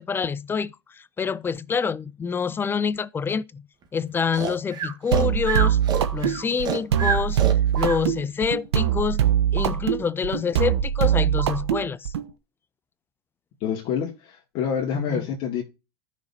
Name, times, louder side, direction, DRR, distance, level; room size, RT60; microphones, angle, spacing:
voice 1, 0.0-3.6 3.9-5.8 6.1-7.4 7.8-9.2 9.5-12.1 15.1-15.3, left 6 dB, 15° left, 0.4 m, -27 dB
Breathing, 4.3-8.0, right 6 dB, 30° right, 1.9 m, -28 dB
sound 1, 5.1-12.3, right 10 dB, 85° right, 1.0 m, -22 dB
voice 2, 13.6-15.6, left 7 dB, 45° left, 2.2 m, -27 dB
14.5 x 6.2 x 2.7 m
supercardioid pair, 120°, 14 cm